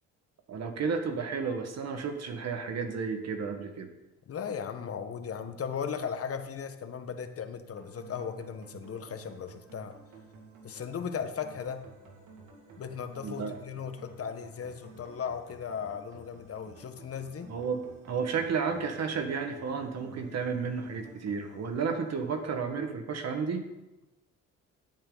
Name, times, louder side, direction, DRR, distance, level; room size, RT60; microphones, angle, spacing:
voice 1, 0.5-3.9 13.2-13.6 17.5-23.7, right 5 dB, 60° right, 5 dB, 1.7 m, -32 dB
voice 2, 4.3-9.9 10.6-11.9 12.8-17.5, left 7 dB, 50° left, 7 dB, 1.3 m, -37 dB
sound 1, 7.8-22.8, right 3 dB, 85° right, 2.3 m, -53 dB
16.0 x 8.7 x 4.0 m, 1.0 s
cardioid pair, 90°, 30 cm